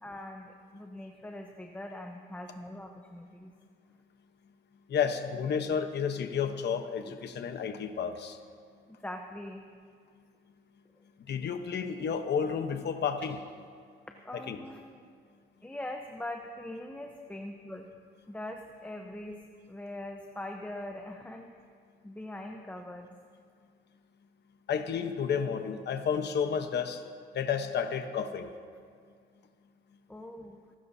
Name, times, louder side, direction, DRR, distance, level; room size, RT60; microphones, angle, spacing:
voice 1, 0.0-3.5 7.0-7.2 8.9-9.6 14.2-15.1 15.6-17.9 18.3-21.6 22.0-23.2 30.1-30.6, left 1 dB, 5° left, 3 dB, 0.9 m, -42 dB
voice 2, 4.9-8.4 11.3-13.4 14.5-14.6 24.7-27.0 27.3-28.5, left 7 dB, 60° left, 6 dB, 1.0 m, -31 dB
24.5 x 13.0 x 2.8 m, 2.1 s
cardioid pair, 90°, 20 cm